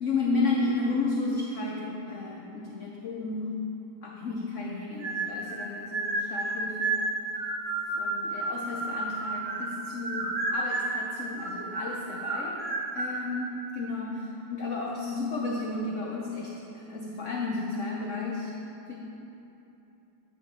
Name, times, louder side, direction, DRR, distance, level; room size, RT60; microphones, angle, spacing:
voice 1, 0.0-3.7 4.0-7.0 7.9-12.6 12.9-18.5 18.9-19.0, left 3 dB, 90° left, -2 dB, 0.6 m, -32 dB
sound 1, 5.0-5.6 5.9-9.7 10.0-11.0 11.4-13.2, right 2 dB, 50° right, 0.7 m, -31 dB
8.5 x 6.0 x 3.9 m, 2.9 s
omnidirectional pair, 2.1 m